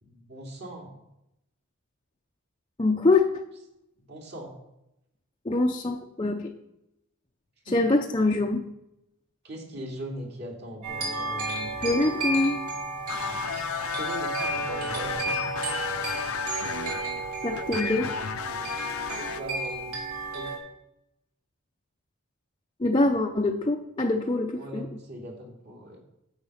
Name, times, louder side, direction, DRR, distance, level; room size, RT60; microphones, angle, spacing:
voice 1, 0.0-0.9 4.1-4.5 7.7-7.8 9.4-12.0 13.2-13.4 13.9-15.4 19.1-19.9 20.3-20.6 24.5-26.0, equal, 50° right, -1 dB, 2.9 m, -40 dB
voice 2, 2.8-3.4 5.4-6.5 7.7-8.7 11.8-12.6 17.4-18.4 22.8-24.9, left 2 dB, 25° left, 2 dB, 0.6 m, -24 dB
sound 1, 10.8-20.6, right 2 dB, 80° right, 3.6 m, -32 dB
sound 2, 13.1-19.4, left 6 dB, 75° left, 0.7 m, -33 dB
10.0 x 8.0 x 5.7 m, 0.86 s
head